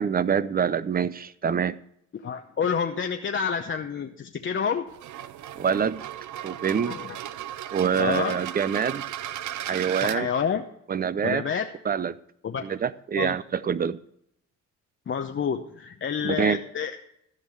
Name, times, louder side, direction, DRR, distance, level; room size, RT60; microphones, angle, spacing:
voice 1, 0.0-1.8 5.6-6.0 6.4-7.0 7.7-9.0 9.7-10.3 10.9-11.4 11.8-12.2 12.6-14.0 16.2-16.6, right 7 dB, 30° right, 18 dB, 0.6 m, -25 dB
voice 2, 2.2-4.9 6.9-7.2 8.0-8.4 10.0-10.6 11.2-11.7 12.4-12.6 13.2-13.4 15.1-17.0, left 7 dB, 40° left, 4 dB, 0.8 m, -28 dB
sound 1, 4.9-10.2, right 12 dB, 70° right, 0.6 m, -36 dB
13.5 x 5.4 x 6.6 m, 0.73 s
cardioid pair, 90°, 30 cm